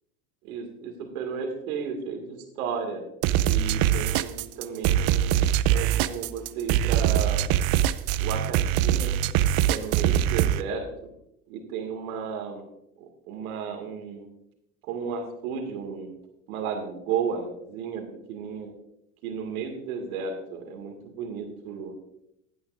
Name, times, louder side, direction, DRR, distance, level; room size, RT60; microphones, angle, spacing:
voice 1, 0.4-3.0 3.4-5.3 5.7-7.4 8.2-9.1 9.7-10.8 11.5-12.6 13.0-14.3 14.8-16.1 16.5-18.7 19.2-21.9, right 6 dB, 80° right, 4 dB, 2.3 m, -33 dB
sound 1, 3.2-10.6, right 11 dB, 55° right, 0.6 m, -23 dB
15.5 x 9.4 x 2.6 m, 0.79 s
supercardioid pair, 90°, 42 cm